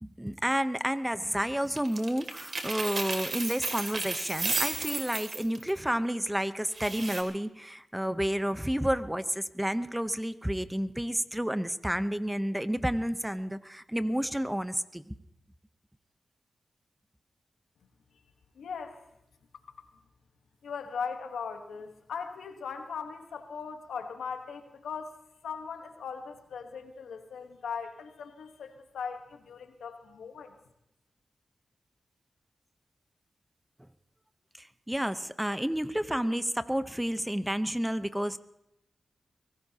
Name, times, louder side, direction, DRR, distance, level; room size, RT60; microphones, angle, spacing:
voice 1, 0.0-15.2 34.6-38.4, equal, 10° right, 12 dB, 0.9 m, -30 dB
sound 1, 1.8-5.7 6.7-7.2, right 3 dB, 55° right, 2.7 m, -33 dB
voice 2, 18.5-19.0 20.6-30.6, left 6 dB, 90° left, 6 dB, 1.3 m, -39 dB
23.5 x 17.0 x 2.9 m, 0.85 s
supercardioid pair, 40°, 0 cm